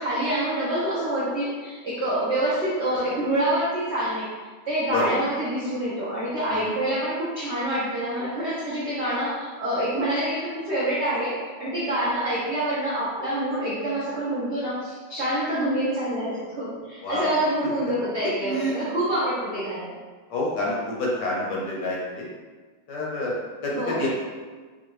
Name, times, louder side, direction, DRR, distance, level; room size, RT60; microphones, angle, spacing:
voice 1, 0.0-4.3 4.7-19.9 23.7-24.0, right 1 dB, 80° right, -9 dB, 0.6 m, -26 dB
voice 2, 18.4-18.9 20.3-22.3 22.9-24.1, left 1 dB, 70° left, -4 dB, 1.1 m, -28 dB
4.5 x 2.2 x 3.0 m, 1.4 s
omnidirectional pair, 2.3 m